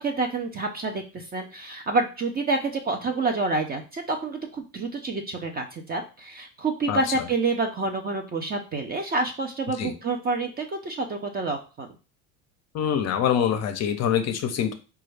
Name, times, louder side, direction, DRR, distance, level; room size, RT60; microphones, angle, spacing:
voice 1, 0.0-11.9, right 3 dB, 20° right, 4 dB, 0.4 m, -28 dB
voice 2, 12.7-14.7, left 9 dB, 40° left, 8 dB, 0.6 m, -24 dB
4.0 x 2.3 x 3.2 m, 0.33 s
supercardioid pair, 100°, 43 cm